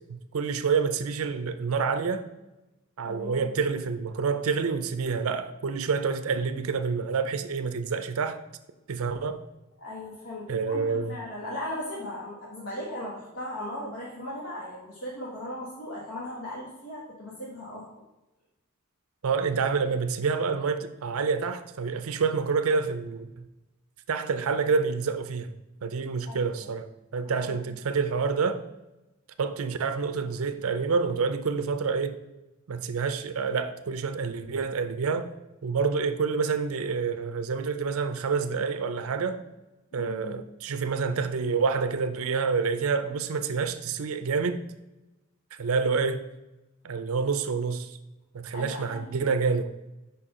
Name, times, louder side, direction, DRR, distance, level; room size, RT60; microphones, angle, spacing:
voice 1, 0.1-2.3 3.0-8.4 8.9-9.4 10.5-11.2 19.2-23.3 24.1-25.5 25.8-28.6 29.4-32.2 32.7-35.3 35.6-39.4 39.9-44.6 45.5-46.2 46.8-48.0 48.3-49.7, right 5 dB, 75° right, 0.5 m, -28 dB
voice 2, 3.0-3.5 9.8-17.9 26.3-26.7 27.4-27.6 39.9-40.4 48.5-49.3, left 1 dB, 85° left, 1.3 m, -38 dB
5.4 x 4.3 x 4.8 m
head